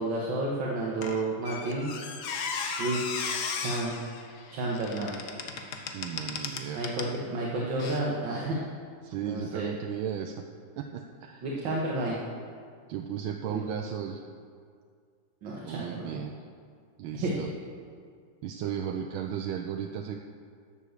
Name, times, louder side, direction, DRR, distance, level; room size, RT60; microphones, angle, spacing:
voice 1, 0.0-1.9 2.8-3.0 3.6-3.9 4.5-5.2 6.8-8.6 9.2-9.7 11.4-12.2 13.5-13.6 15.4-16.2 17.2-17.5, right 2 dB, 65° right, -3 dB, 2.0 m, -31 dB
Squeak, 1.0-7.2 7.8-8.0, left 5 dB, 60° left, 1.3 m, -36 dB
voice 2, 5.9-6.8 9.0-10.3 10.8-11.4 12.9-14.2 15.6-16.4 17.0-17.5 18.4-20.2, right 8 dB, 90° right, 3 dB, 1.4 m, -35 dB
11.5 x 7.2 x 6.6 m, 2.1 s
omnidirectional pair, 2.2 m